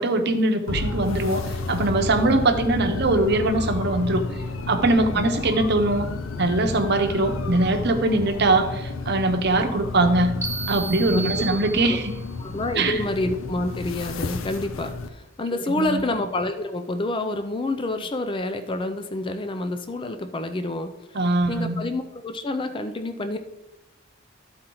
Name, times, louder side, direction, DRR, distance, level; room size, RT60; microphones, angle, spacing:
voice 1, 0.0-1.4 1.7-4.2 4.7-6.1 6.4-10.4 10.7-12.1 12.8-13.0 15.7-16.0 21.1-21.8, right 2 dB, 55° right, 6 dB, 0.9 m, -22 dB
sound 1, 0.7-15.1, left 3 dB, 90° left, 0.6 m, -31 dB
sound 2, 10.4-12.3, right 4 dB, 15° right, 1.0 m, -33 dB
voice 2, 11.1-12.0 12.4-21.2 21.5-23.4, left 2 dB, 25° left, 8 dB, 0.4 m, -28 dB
12.5 x 4.3 x 3.9 m, 0.97 s
head